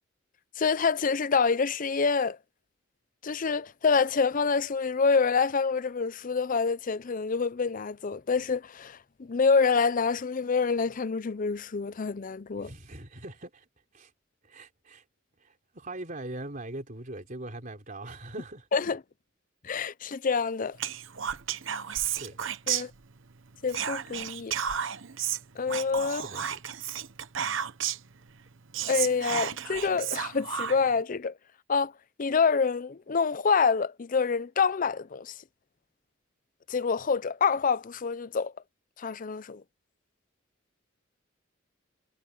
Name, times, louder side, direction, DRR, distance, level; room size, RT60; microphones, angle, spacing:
voice 1, 0.6-2.4 3.2-12.7 18.7-19.0 19.6-20.8 22.7-22.9 23.6-24.5 25.6-26.2 28.9-31.3 31.7-31.9 32.2-35.3 36.7-38.5 39.0-39.6, left 5 dB, 40° left, 0.5 m, -27 dB
voice 2, 12.6-13.7 13.9-14.1 14.4-15.0 15.4-18.7 22.0-22.4 26.1-26.6, right 2 dB, 40° right, 3.8 m, -41 dB
Whispering, 20.8-23.3 23.7-28.1 28.5-28.6 28.7-31.0, right 9 dB, 70° right, 1.0 m, -32 dB
head